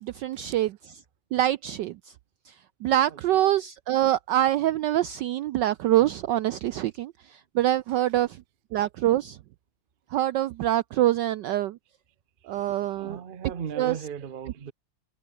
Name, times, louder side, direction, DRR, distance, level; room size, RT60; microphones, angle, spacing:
voice 1, 0.0-1.0 1.3-2.1 2.4-8.4 8.7-9.4 10.1-11.8 12.4-13.2 13.8-14.0, right 13 dB, 80° right, 1.0 m, -25 dB
voice 2, 3.1-3.4 12.5-12.6 13.0-14.7, right 7 dB, 60° right, 0.5 m, -38 dB
omnidirectional pair, 2.4 m